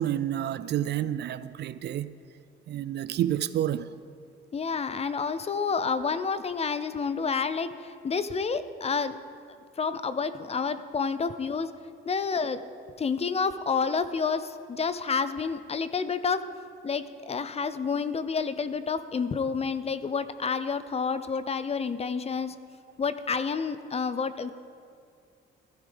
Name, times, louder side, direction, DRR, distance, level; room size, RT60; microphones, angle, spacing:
voice 1, 0.0-2.1 2.7-3.9, right 11 dB, 60° right, 0.4 m, -29 dB
voice 2, 4.5-9.2 9.8-11.7 12.0-12.6 13.0-16.4 16.8-22.6 23.0-24.5, left 5 dB, 30° left, 0.5 m, -29 dB
15.0 x 12.5 x 3.5 m
cardioid pair, 90°, 20 cm